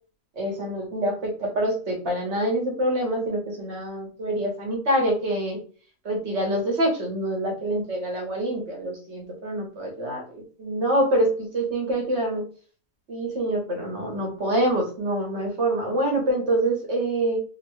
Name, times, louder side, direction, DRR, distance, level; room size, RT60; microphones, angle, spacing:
voice 1, 0.4-5.6 6.0-12.4 13.1-17.4, right 1 dB, 55° right, 0 dB, 1.3 m, -26 dB
3.3 x 2.2 x 3.1 m, 0.40 s
omnidirectional pair, 1.5 m